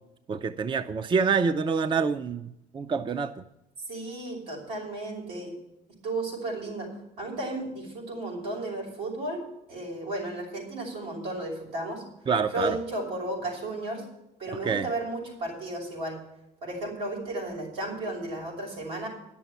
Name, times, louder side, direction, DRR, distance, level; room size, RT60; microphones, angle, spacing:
voice 1, 0.3-3.4 12.3-12.8 14.5-14.9, right 5 dB, 30° right, 11 dB, 0.5 m, -27 dB
voice 2, 3.9-5.5 6.0-6.9 7.2-9.4 9.7-12.0 12.5-14.0 14.4-16.2 16.6-19.1, right 2 dB, 90° right, -1 dB, 5.9 m, -34 dB
10.5 x 7.1 x 9.1 m, 0.86 s
cardioid pair, 110°, 17 cm